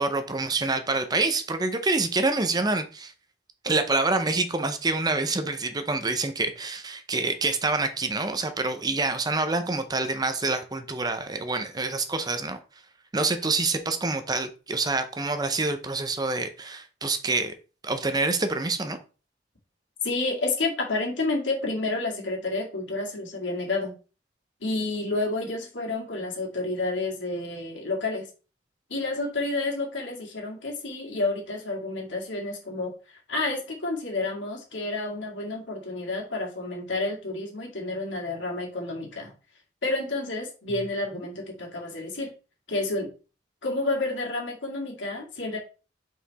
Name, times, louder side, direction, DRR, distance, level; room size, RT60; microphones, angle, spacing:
voice 1, 0.0-3.1 3.6-12.6 13.1-17.5 17.8-19.0, right 3 dB, 20° right, 0.6 m, -27 dB
voice 2, 20.0-23.9 24.6-28.3 28.9-39.3 39.8-42.3 42.7-43.1 43.6-45.6, left 2 dB, 85° left, 2.2 m, -30 dB
5.7 x 4.7 x 4.1 m
head